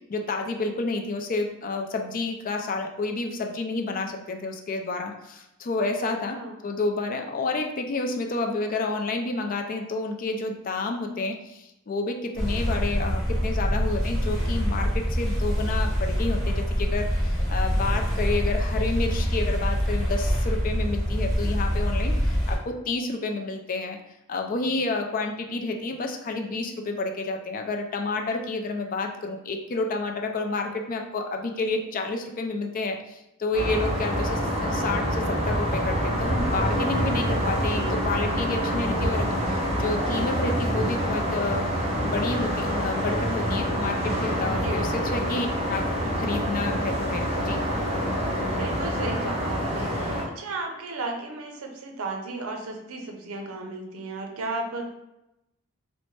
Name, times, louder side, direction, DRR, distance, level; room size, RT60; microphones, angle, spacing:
voice 1, 0.1-6.4 6.6-24.0 24.3-41.7 42.0-47.6, left 3 dB, 40° left, 3 dB, 0.4 m, -30 dB
voice 2, 5.9-6.5 33.7-33.8 44.4-44.7 45.1-45.2 48.1-54.8, right 2 dB, 75° right, 2 dB, 0.6 m, -35 dB
River Elbe near Hamburg, 12.3-22.6, equal, ahead, 1.1 m, -25 dB
trafego leve, 33.5-50.2, equal, 30° right, 0.9 m, -26 dB
4.1 x 2.1 x 3.1 m, 0.89 s
head